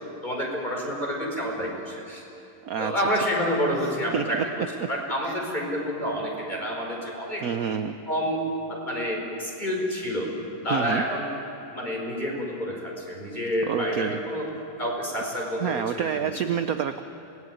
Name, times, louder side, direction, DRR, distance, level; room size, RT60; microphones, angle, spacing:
voice 1, 0.2-2.2 2.8-4.5 4.9-7.4 8.1-10.3 10.6-11.3 11.7-14.5 14.8-16.3, equal, 20° left, -1 dB, 5.4 m, -28 dB
voice 2, 7.4-7.9 10.7-11.0 13.7-14.1 15.4-17.0, right 8 dB, 65° right, 8 dB, 0.9 m, -28 dB
27.0 x 19.0 x 9.4 m, 2.8 s
omnidirectional pair, 2.4 m